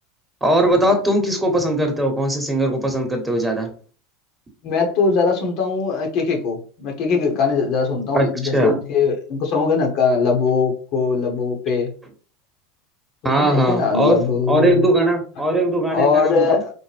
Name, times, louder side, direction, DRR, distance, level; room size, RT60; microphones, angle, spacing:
voice 1, 0.4-3.7 8.1-8.3 8.5-8.8 13.2-14.2 14.5-16.6, right 1 dB, 10° right, 3 dB, 1.1 m, -19 dB
voice 2, 4.6-11.9 13.2-14.9 15.9-16.7, left 5 dB, 55° left, 2 dB, 1.1 m, -20 dB
4.4 x 2.1 x 3.3 m, 0.40 s
hypercardioid pair, 90°, 0 cm